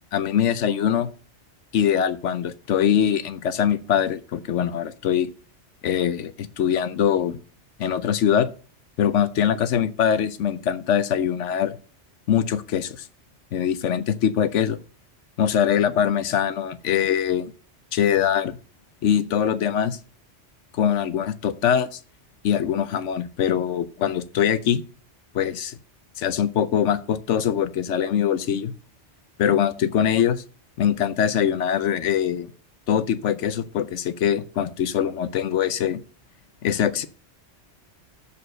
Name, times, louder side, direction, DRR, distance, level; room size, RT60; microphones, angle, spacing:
voice 1, 0.1-1.1 1.7-5.3 5.8-7.4 7.8-8.5 9.0-11.8 12.3-13.1 13.5-14.8 15.4-17.5 17.9-18.6 19.0-20.0 20.7-22.0 22.4-24.8 25.3-25.8 26.2-28.7 29.4-30.4 30.8-32.5 32.9-36.0 36.6-37.1, left 9 dB, 85° left, 14 dB, 1.1 m, -23 dB
7.1 x 6.8 x 6.4 m, 0.39 s
omnidirectional pair, 1.2 m